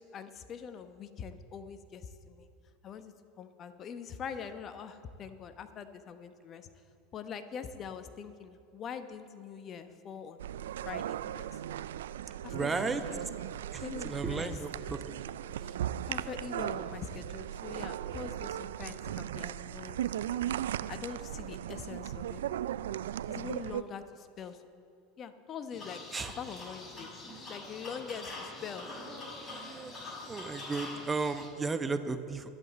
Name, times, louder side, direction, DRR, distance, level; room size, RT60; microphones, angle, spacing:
voice 1, 0.0-2.5 2.8-6.7 7.1-10.4 10.8-11.5 12.4-13.2 13.8-14.6 16.1-20.3 20.9-22.4 23.3-24.6 25.2-26.0 26.4-27.1 27.5-28.9, left 7 dB, 40° left, 9 dB, 1.0 m, -43 dB
sound 1, 10.4-23.8, right 11 dB, 75° right, 0.3 m, -37 dB
voice 2, 12.5-13.0 13.7-15.0 26.1-26.3 29.4-29.9 30.3-32.5, right 4 dB, 20° right, 9 dB, 0.9 m, -34 dB
sound 2, 25.7-31.5, left 2 dB, 25° left, 3.5 m, -44 dB
23.5 x 8.0 x 4.2 m, 2.4 s
hypercardioid pair, 85°, 0 cm